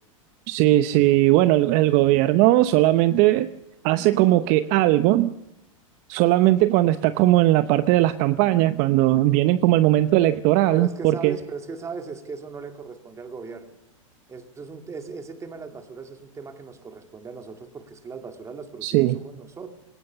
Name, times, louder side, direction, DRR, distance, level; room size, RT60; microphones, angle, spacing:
voice 1, 0.5-3.5 3.8-5.3 6.1-11.4 18.8-19.2, right 15 dB, 45° right, 12 dB, 0.8 m, -19 dB
voice 2, 10.7-13.7 14.3-19.7, right 4 dB, 15° right, 6 dB, 2.5 m, -38 dB
21.0 x 18.0 x 6.9 m, 0.86 s
hypercardioid pair, 125°, 17 cm